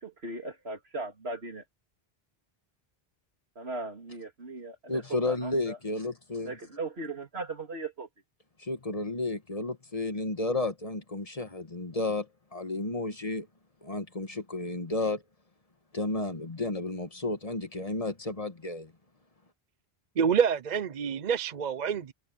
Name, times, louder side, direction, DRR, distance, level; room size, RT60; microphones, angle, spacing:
voice 1, 0.0-1.6 3.5-5.8 6.4-8.1, right 2 dB, 85° right, 3.3 m, -38 dB
voice 2, 4.9-6.6 8.6-13.5 13.8-15.2 15.9-18.9, left 2 dB, 35° left, 1.6 m, -32 dB
voice 3, 20.2-22.1, right 7 dB, 50° right, 0.7 m, -27 dB
omnidirectional pair, 1.0 m